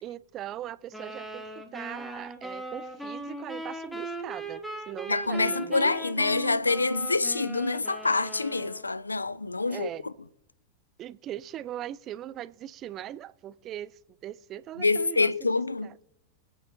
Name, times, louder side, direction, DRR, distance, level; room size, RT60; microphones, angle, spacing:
voice 1, 0.0-6.0 9.7-10.1 11.0-16.0, right 12 dB, 30° right, 0.4 m, -40 dB
sound 1, 0.9-8.9, right 2 dB, 5° left, 1.4 m, -39 dB
voice 2, 5.1-10.1 14.8-15.9, left 3 dB, 80° left, 0.4 m, -26 dB
24.0 x 8.7 x 2.6 m
figure-of-eight pair, 90°, 0 cm